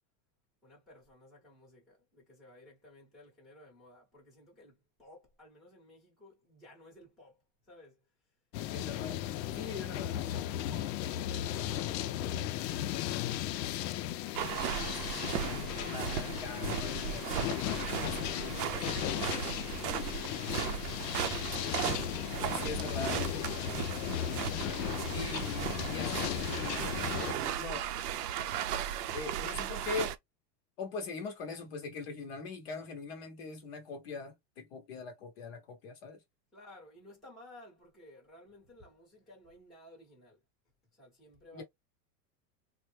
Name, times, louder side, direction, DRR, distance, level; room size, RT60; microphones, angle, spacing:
voice 1, 0.6-8.1 36.5-40.4 40.9-41.6, left 1 dB, ahead, 0.8 m, -57 dB
sound 1, 8.5-27.3, left 12 dB, 80° left, 0.6 m, -36 dB
voice 2, 8.7-9.2 9.5-10.1 14.9-19.2 22.4-23.8 24.1-24.4 25.1-26.9 27.3-27.8 29.1-30.1 30.8-36.2 41.5-41.6, left 4 dB, 40° left, 0.7 m, -42 dB
sound 2, 14.3-30.2, right 9 dB, 70° right, 0.6 m, -36 dB
3.6 x 2.1 x 3.2 m
supercardioid pair, 170°, 50 cm